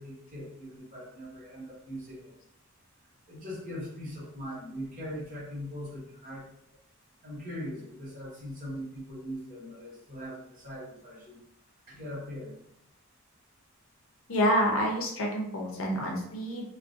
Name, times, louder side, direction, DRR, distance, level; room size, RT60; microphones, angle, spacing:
voice 1, 0.0-2.3 3.3-6.5 7.2-11.4 11.9-12.5, equal, 40° right, -7 dB, 1.0 m, -40 dB
voice 2, 14.3-16.6, equal, 70° left, -1 dB, 0.6 m, -28 dB
2.4 x 2.2 x 2.5 m, 0.75 s
head